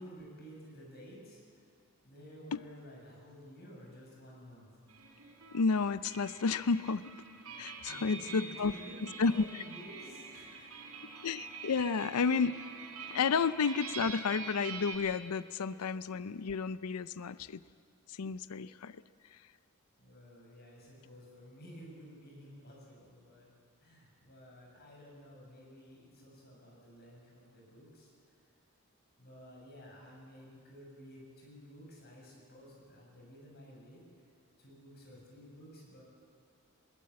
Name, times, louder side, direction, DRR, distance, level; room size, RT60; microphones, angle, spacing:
voice 1, 0.0-1.7 2.0-4.7 7.8-10.7 15.6-15.7 20.0-23.5 23.8-28.4 29.2-34.3 34.6-36.0, equal, 45° left, -2 dB, 7.4 m, -53 dB
sound 1, 4.9-14.9, right 5 dB, 80° right, 4.4 m, -46 dB
voice 2, 5.5-7.1 7.6-8.7 9.2-9.4 11.2-12.6 13.1-17.6 18.1-19.0, left 5 dB, 90° left, 15 dB, 0.6 m, -31 dB
21.0 x 19.5 x 8.7 m, 2.4 s
head